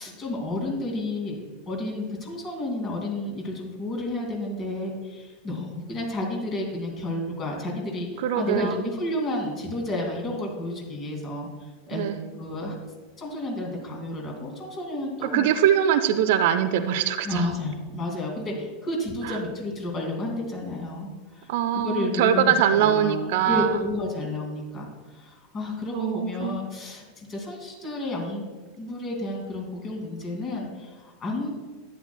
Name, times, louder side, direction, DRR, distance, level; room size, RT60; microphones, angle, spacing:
voice 1, 0.0-1.4 1.7-11.5 11.9-12.0 12.4-12.7 13.2-15.5 17.2-28.4 28.8-31.5, left 2 dB, 30° left, 0 dB, 2.4 m, -31 dB
voice 2, 8.2-8.9 11.9-12.2 15.2-17.5 19.2-19.4 21.5-23.8 25.9-26.6, right 9 dB, 55° right, 10 dB, 0.4 m, -23 dB
11.0 x 9.1 x 2.3 m, 1.4 s
figure-of-eight pair, 85°, 0 cm